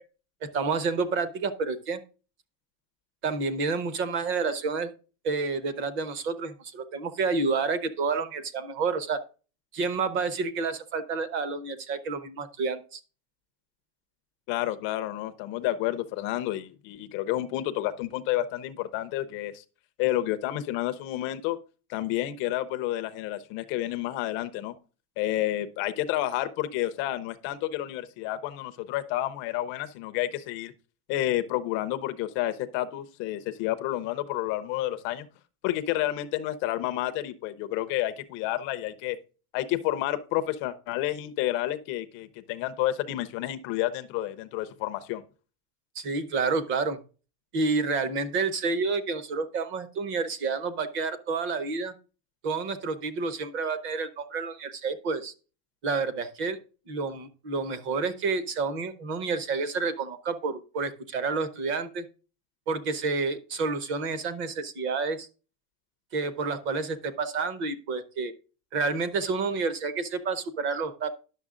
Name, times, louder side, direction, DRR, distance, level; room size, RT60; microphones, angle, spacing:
voice 1, 0.5-2.0 3.2-4.9 5.2-9.2 9.7-13.0 45.9-47.0 47.5-51.9 52.4-55.3 55.8-56.6 56.9-62.1 62.7-65.3 66.1-68.3 68.7-71.1, right 4 dB, 25° right, 13 dB, 0.7 m, -29 dB
voice 2, 14.5-19.6 20.0-21.6 21.9-24.7 25.2-30.7 31.1-35.3 35.6-39.2 39.5-45.2, left 14 dB, 30° left, 10 dB, 0.4 m, -30 dB
11.0 x 6.7 x 3.7 m, 0.35 s
cardioid pair, 180°, 45 cm